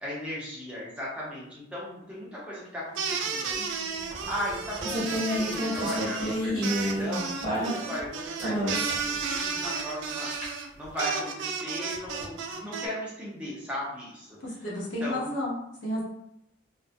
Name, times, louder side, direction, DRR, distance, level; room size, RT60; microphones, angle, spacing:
voice 1, 0.0-3.9 4.3-10.3 10.8-14.4 15.0-15.3, equal, 5° right, -7 dB, 0.6 m, -36 dB
sound 1, 2.9-12.9, right 5 dB, 70° right, 0.3 m, -33 dB
sound 2, 4.1-8.1 8.4-9.1 10.4-10.5, equal, 40° left, 0.9 m, -29 dB
voice 2, 14.4-16.0, left 1 dB, 70° left, -5 dB, 0.8 m, -32 dB
2.4 x 2.0 x 2.5 m, 0.77 s
head